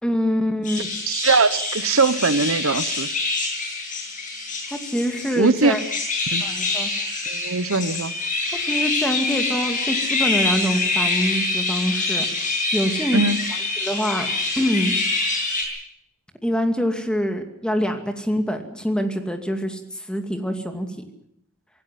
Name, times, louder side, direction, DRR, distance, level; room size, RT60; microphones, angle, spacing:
voice 1, 0.0-0.9 4.7-5.8 6.4-6.9 8.6-12.3 12.7-13.2 13.8-14.3 14.6-14.9 16.4-20.9, equal, 5° left, 6 dB, 2.4 m, -25 dB
sound 1, 0.6-15.6, left 3 dB, 40° left, 7.9 m, -25 dB
voice 2, 1.1-3.1 5.4-5.7 6.3-6.5 7.3-8.1 13.1-13.4, right 4 dB, 70° right, 14 dB, 1.1 m, -21 dB
26.0 x 17.0 x 7.6 m, 0.74 s
head